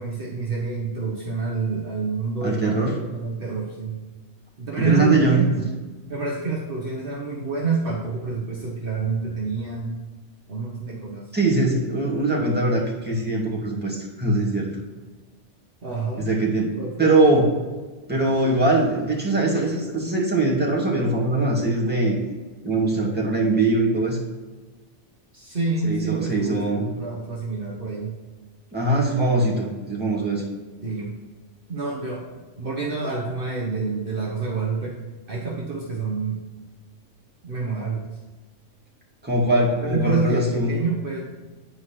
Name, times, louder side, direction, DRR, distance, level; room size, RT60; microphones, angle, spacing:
voice 1, 0.0-4.0 4.6-5.7 6.1-10.0 10.5-11.3 15.8-16.3 16.8-17.1 25.3-28.2 30.8-31.1 31.7-32.3 32.6-35.0 35.3-36.4 37.4-38.1 39.8-41.2, right 4 dB, 50° right, -3 dB, 1.3 m, -27 dB
voice 2, 2.4-2.9 4.8-5.5 11.3-14.7 16.2-17.5 18.1-22.2 22.6-24.2 25.8-26.9 28.7-30.4 39.2-40.7, right 2 dB, 10° right, -4 dB, 2.1 m, -22 dB
9.6 x 4.8 x 5.8 m, 1.3 s
omnidirectional pair, 1.3 m